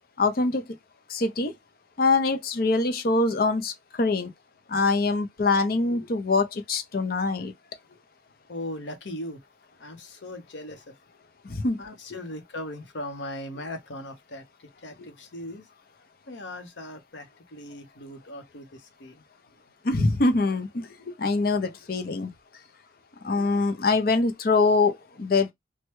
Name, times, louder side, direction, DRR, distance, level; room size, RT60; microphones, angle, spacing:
voice 1, 0.2-0.6 1.1-1.5 2.0-4.3 4.7-7.5 11.4-11.8 19.8-22.3 23.2-25.5, left 3 dB, 55° left, 0.6 m, -24 dB
voice 2, 8.5-9.5 9.8-11.0 11.8-15.7 16.3-19.2, left 1 dB, 85° left, 0.9 m, -39 dB
3.2 x 2.2 x 3.0 m
head